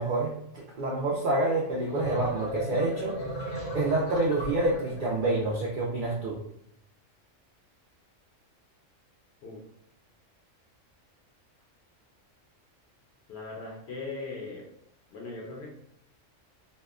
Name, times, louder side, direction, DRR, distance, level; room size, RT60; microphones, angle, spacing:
voice 1, 0.0-6.4, right 2 dB, 65° right, -3 dB, 0.5 m, -28 dB
sound 1, 1.7-5.5, right 1 dB, 85° left, 1.0 m, -36 dB
voice 2, 13.3-14.7 15.1-15.7, left 3 dB, 65° left, -2 dB, 0.7 m, -39 dB
2.7 x 2.1 x 2.3 m, 0.70 s
omnidirectional pair, 1.3 m